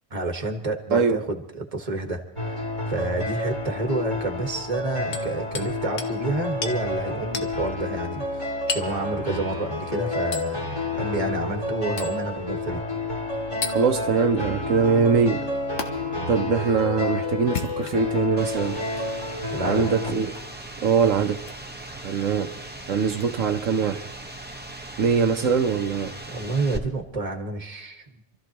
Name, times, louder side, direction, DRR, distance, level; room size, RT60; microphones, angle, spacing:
voice 1, 0.1-12.8 19.5-19.9 26.3-28.1, right 2 dB, 30° right, 1.6 m, -29 dB
voice 2, 0.9-1.2 13.7-15.4 16.3-18.8 19.6-20.3 20.8-21.4 22.0-22.5 22.9-24.0 25.0-26.1, right 6 dB, 85° right, 1.3 m, -22 dB
sound 1, 2.4-20.1, left 2 dB, 25° left, 2.8 m, -30 dB
Hammer, 5.1-5.7 6.0-6.2 6.6-6.8 7.3-7.5 8.7-9.0 10.3-10.5 12.0-12.2 13.6-13.8 15.8-15.9 17.4-18.2 18.9-19.1 20.3-20.5 21.4-21.6 23.2-23.3, left 5 dB, 75° left, 1.4 m, -32 dB
sound 2, 18.4-26.8, right 2 dB, 10° right, 1.1 m, -39 dB
27.5 x 13.5 x 3.0 m
omnidirectional pair, 1.3 m